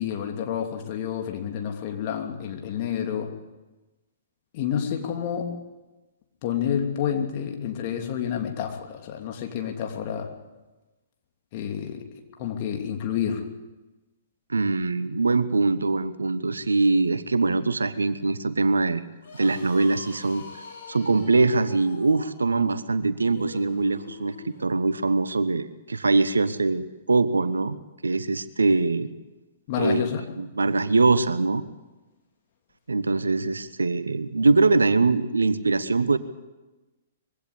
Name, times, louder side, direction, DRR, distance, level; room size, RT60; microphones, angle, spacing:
voice 1, 0.0-3.3 4.5-5.5 6.4-10.3 11.5-12.1 12.4-13.4 29.7-30.3, left 8 dB, 40° left, 4 dB, 2.9 m, -29 dB
voice 2, 14.5-19.0 19.4-20.4 20.9-27.8 28.0-29.1 29.8-30.1 30.4-31.6 32.9-36.2, right 3 dB, 75° right, 14 dB, 1.1 m, -23 dB
sound 1, 19.1-24.8, left 4 dB, 60° left, 6.2 m, -44 dB
22.0 x 16.5 x 8.4 m, 1.1 s
figure-of-eight pair, 115°, 0 cm